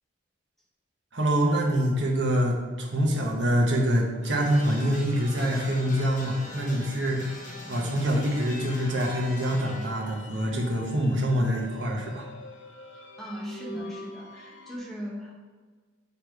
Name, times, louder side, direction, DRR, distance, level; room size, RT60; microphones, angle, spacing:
voice 1, 1.1-7.4 7.7-12.3, equal, 75° right, -1 dB, 1.2 m, -25 dB
sound 1, 4.2-9.9, left 1 dB, 45° left, 1.1 m, -41 dB
sound 2, 8.1-14.8, left 1 dB, 75° left, 0.5 m, -45 dB
voice 2, 12.9-15.4, equal, ahead, -5 dB, 1.1 m, -38 dB
6.9 x 3.4 x 4.6 m, 1.5 s
head